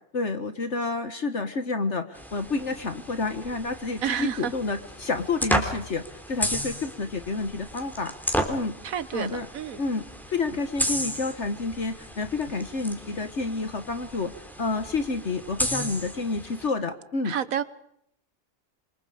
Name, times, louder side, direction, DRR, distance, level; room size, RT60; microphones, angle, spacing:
voice 1, 0.1-8.1 8.5-8.7 9.1-9.5 9.8-17.4, left 3 dB, 55° left, 1.8 m, -29 dB
sound 1, 2.1-16.7, equal, ahead, 3.6 m, -33 dB
voice 2, 4.0-4.5 8.8-9.8 17.2-17.6, right 8 dB, 80° right, 1.5 m, -29 dB
29.0 x 25.0 x 5.1 m
omnidirectional pair, 1.4 m